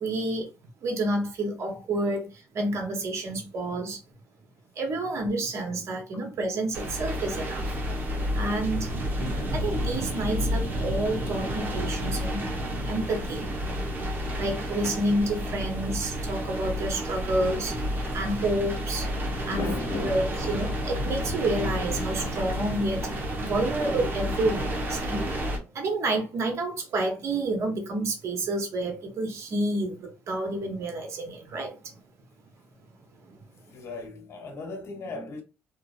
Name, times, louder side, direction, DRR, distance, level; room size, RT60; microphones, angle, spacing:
voice 1, 0.0-0.5 0.8-4.0 4.8-7.7 8.3-8.9 9.5-12.5 12.8-13.5 14.4-17.8 18.1-19.1 19.5-19.6 20.0-25.3 25.7-31.9, right 2 dB, 55° right, 1.2 m, -29 dB
sound 1, 6.7-25.6, equal, 35° right, 1.1 m, -30 dB
voice 2, 19.5-20.3 21.0-21.1 33.7-35.4, left 3 dB, 50° left, 1.0 m, -35 dB
2.8 x 2.6 x 2.4 m
supercardioid pair, 75°, 6 cm